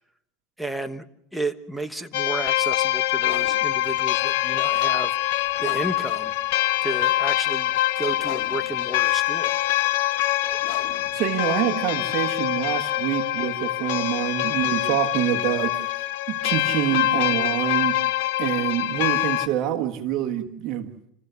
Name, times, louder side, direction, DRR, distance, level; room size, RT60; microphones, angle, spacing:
voice 1, 0.6-1.1 1.3-5.1 5.6-6.3 6.8-9.5, right 1 dB, ahead, 8 dB, 1.2 m, -32 dB
sound 1, 2.1-19.5, left 15 dB, 70° left, 1.0 m, -24 dB
sound 2, 3.1-13.0, left 9 dB, 50° left, 3.3 m, -44 dB
voice 2, 11.1-18.0 18.4-20.9, right 12 dB, 50° right, 5 dB, 1.7 m, -26 dB
27.5 x 15.5 x 6.9 m, 0.77 s
supercardioid pair, 110°, 0 cm